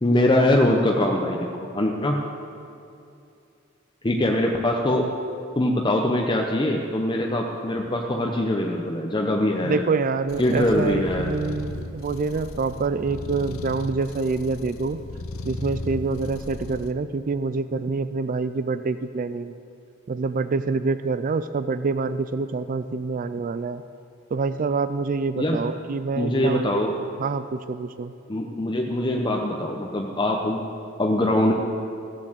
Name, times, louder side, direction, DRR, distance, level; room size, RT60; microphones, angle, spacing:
voice 1, 0.0-2.2 4.0-5.1 5.5-9.9 10.4-11.3 25.4-25.6 26.2-27.0 28.3-30.7 31.0-31.5, left 1 dB, 20° left, 0 dB, 0.8 m, -23 dB
voice 2, 9.6-15.0 15.4-19.5 20.1-23.8 24.3-26.8 27.2-28.1, right 4 dB, 40° right, 12 dB, 0.4 m, -26 dB
sound 1, 10.3-16.9, left 2 dB, 80° left, 0.8 m, -36 dB
15.0 x 7.3 x 7.9 m, 2.6 s
head